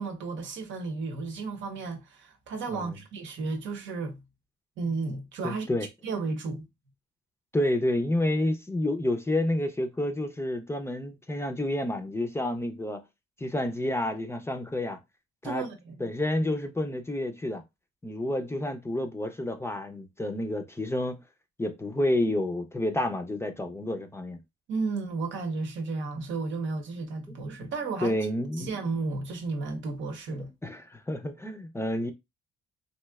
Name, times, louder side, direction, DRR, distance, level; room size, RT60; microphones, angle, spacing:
voice 1, 0.0-4.2 4.8-5.7 6.0-6.7 15.4-16.1 24.7-28.2 28.6-30.5, right 3 dB, 70° right, 0.8 m, -33 dB
voice 2, 5.4-5.9 7.5-13.0 13.4-15.0 15.4-15.6 16.0-17.6 18.0-21.2 21.6-24.4 27.3-27.4 28.0-28.7 30.6-32.1, left 1 dB, 15° left, 0.5 m, -29 dB
3.1 x 2.7 x 2.2 m
cardioid pair, 90°, 20 cm